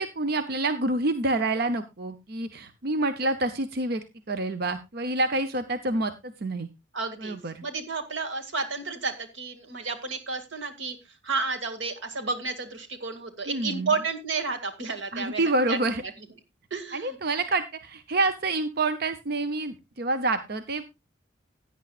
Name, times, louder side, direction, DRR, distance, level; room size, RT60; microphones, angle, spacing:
voice 1, 0.0-6.7 7.2-7.6 13.5-14.0 15.1-16.0 16.9-20.9, right 2 dB, 55° right, 9 dB, 0.8 m, -28 dB
voice 2, 6.9-11.0 11.2-15.8 16.7-17.2, right 4 dB, 90° right, 6 dB, 2.1 m, -31 dB
16.5 x 9.6 x 2.4 m, 0.22 s
head